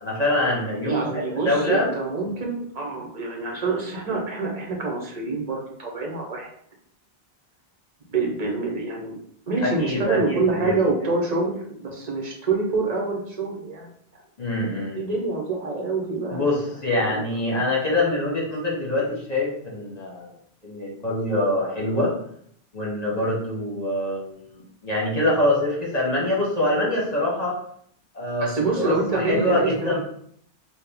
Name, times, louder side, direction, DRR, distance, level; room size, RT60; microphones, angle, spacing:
voice 1, 0.0-1.9 9.6-10.7 14.4-15.0 16.3-20.3 20.6-22.1 22.7-27.6 28.1-28.5 28.8-30.0, left 1 dB, 40° left, -4 dB, 0.9 m, -24 dB
voice 2, 0.8-6.5 8.1-9.2 9.5-14.2 14.9-16.5 17.1-17.6 28.4-30.0, right 3 dB, 40° right, 0 dB, 0.9 m, -26 dB
4.2 x 2.2 x 3.4 m, 0.66 s
omnidirectional pair, 1.1 m